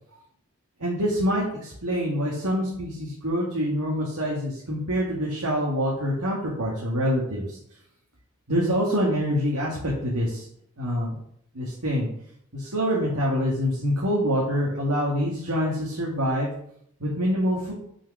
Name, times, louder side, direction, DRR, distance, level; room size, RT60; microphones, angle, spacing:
voice 1, 0.8-7.6 8.5-10.5 10.8-11.2 11.5-12.1 12.5-16.5 17.0-17.7, equal, 85° right, -4 dB, 2.1 m, -25 dB
6.4 x 5.5 x 6.2 m, 0.67 s
head